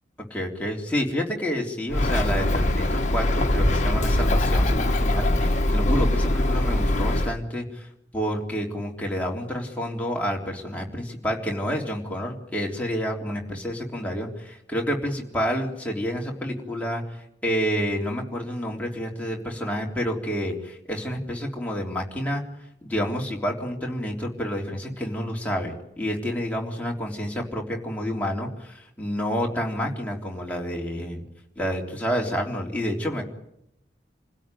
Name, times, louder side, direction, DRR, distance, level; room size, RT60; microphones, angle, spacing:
voice 1, 0.3-22.4 22.8-31.2 31.6-33.2, equal, 10° left, -1 dB, 3.6 m, -29 dB
Bird, 1.9-7.3, left 1 dB, 40° left, 1.7 m, -22 dB
28.0 x 16.5 x 9.2 m, 0.81 s
head